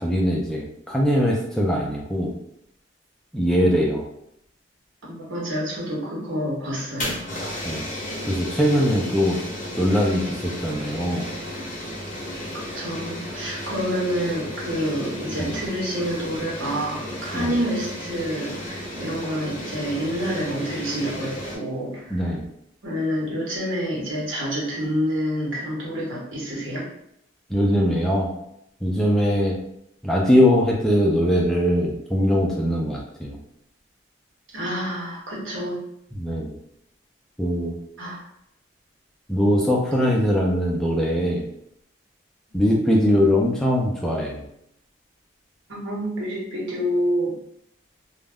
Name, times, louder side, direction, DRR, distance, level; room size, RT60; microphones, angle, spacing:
voice 1, 0.0-2.3 3.3-4.0 7.6-7.9 8.3-9.4 9.8-11.3 15.4-15.6 17.3-17.5 22.1-22.4 27.5-28.3 28.8-29.6 30.0-33.4 36.1-36.6 37.4-37.8 39.3-41.4 42.5-44.4, equal, 5° left, -3 dB, 0.3 m, -21 dB
voice 2, 5.1-7.2 8.9-9.0 12.5-22.2 22.8-26.9 34.5-35.8 38.0-38.3 45.7-47.4, equal, 85° right, -5 dB, 1.1 m, -28 dB
sound 1, 6.7-21.6, left 1 dB, 40° left, 0.7 m, -34 dB
2.3 x 2.0 x 3.4 m, 0.77 s
head